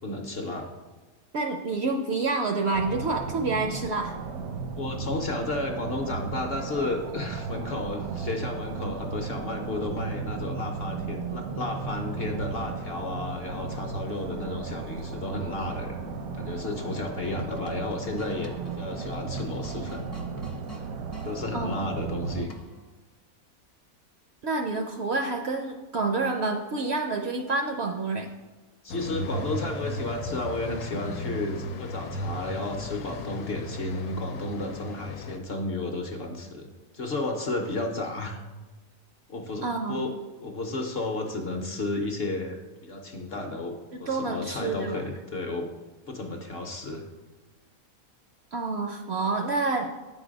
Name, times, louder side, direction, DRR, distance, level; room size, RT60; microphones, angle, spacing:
voice 1, 0.0-0.7 4.8-16.0 16.3-20.1 21.2-22.5 28.8-36.7 36.9-38.4 39.3-40.1 40.4-43.7 44.0-45.7 46.1-47.0, left 2 dB, 55° left, 3 dB, 0.8 m, -32 dB
voice 2, 1.3-4.1 21.5-21.7 24.4-28.3 39.6-40.1 44.1-45.0 48.5-49.9, right 3 dB, 65° right, 3 dB, 0.6 m, -28 dB
sound 1, 2.7-22.5, right 5 dB, 80° right, 1.2 m, -35 dB
sound 2, 17.0-21.3 22.5-22.9, equal, 20° left, 0.4 m, -45 dB
sound 3, 28.9-35.4, left 1 dB, 85° left, 1.1 m, -35 dB
8.1 x 4.0 x 5.1 m, 1.2 s
omnidirectional pair, 1.5 m